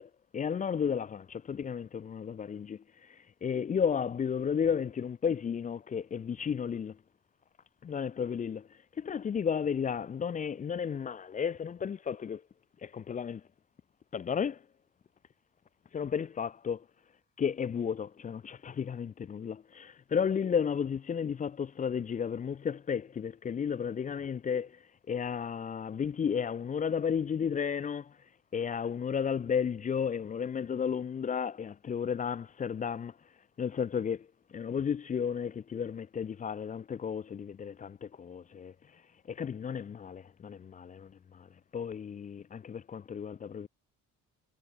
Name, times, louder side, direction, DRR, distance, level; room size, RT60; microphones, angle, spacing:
voice 1, 0.0-7.0 7.8-12.4 12.8-13.4 14.1-14.6 15.9-16.9 17.4-28.2 28.5-33.2 33.6-39.0 39.3-43.7, left 7 dB, 25° left, 0.4 m, -33 dB
cardioid pair, 90°, 30 cm